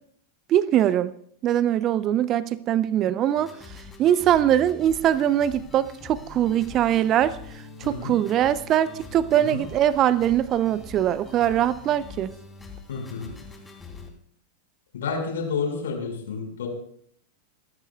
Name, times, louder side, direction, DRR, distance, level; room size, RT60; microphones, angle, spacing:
voice 1, 0.5-1.1 1.4-3.5 4.0-7.4 7.8-12.3, right 11 dB, 35° right, 17 dB, 0.6 m, -22 dB
sound 1, 3.4-14.1, left 3 dB, 10° left, 3.0 m, -43 dB
voice 2, 12.9-13.3 14.9-16.7, left 5 dB, 60° left, 3 dB, 5.1 m, -30 dB
27.5 x 14.0 x 2.3 m, 0.64 s
figure-of-eight pair, 90°, 0 cm